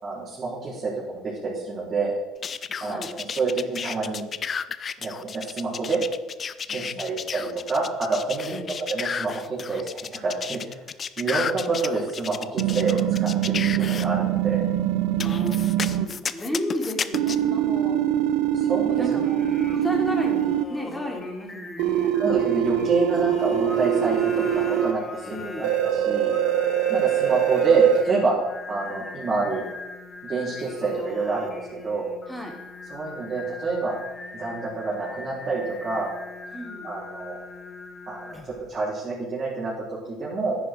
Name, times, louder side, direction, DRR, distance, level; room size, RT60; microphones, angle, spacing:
voice 1, 0.0-2.2 2.8-4.2 5.0-6.0 6.7-8.6 8.9-10.8 11.2-14.6 18.5-19.0 22.2-26.4 26.9-28.3 28.7-29.7 30.2-32.1 32.9-34.0 34.3-36.1 36.8-37.4 38.1-40.6, right 4 dB, 35° right, -8 dB, 4.0 m, -27 dB
sound 1, 2.4-14.1 15.2-17.4, left 6 dB, 40° left, 0.5 m, -32 dB
voice 2, 6.7-7.1 8.5-8.8 15.2-18.0 18.9-19.4 19.7-22.2 25.3-25.7 32.3-32.6 36.5-36.9, equal, 5° left, 1 dB, 2.9 m, -33 dB
sound 2, 12.6-16.1 17.1-20.6 21.8-24.9 25.6-28.0, right 11 dB, 80° right, 0.7 m, -23 dB
Singing, 19.1-38.7, left 3 dB, 25° left, 1.4 m, -39 dB
10.5 x 9.5 x 4.6 m, 1.1 s
supercardioid pair, 85°, 0 cm